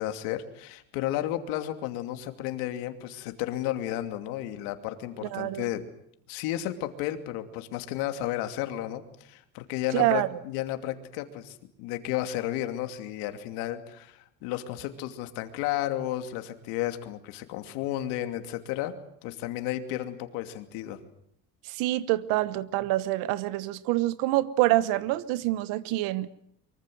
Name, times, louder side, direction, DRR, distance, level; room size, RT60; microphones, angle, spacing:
voice 1, 0.0-5.8 6.3-21.0, left 13 dB, 90° left, 7 dB, 2.8 m, -33 dB
voice 2, 5.2-5.7 9.9-10.3 21.7-26.3, right 17 dB, 80° right, 16 dB, 1.2 m, -26 dB
24.5 x 24.0 x 7.9 m, 0.71 s
cardioid pair, 170°, 33 cm